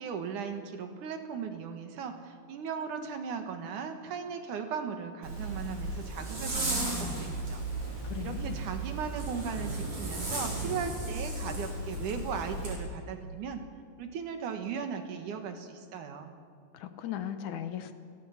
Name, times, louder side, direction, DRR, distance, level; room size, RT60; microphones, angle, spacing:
voice 1, 0.0-7.6 8.2-13.6 14.0-16.3, right 6 dB, 70° right, 6 dB, 3.0 m, -37 dB
Zipper (clothing), 5.2-12.8, right 2 dB, 45° right, 6.7 m, -35 dB
voice 2, 8.0-8.6 16.7-17.9, left 10 dB, 70° left, 9 dB, 2.3 m, -37 dB
29.0 x 20.0 x 5.8 m, 2.2 s
omnidirectional pair, 3.8 m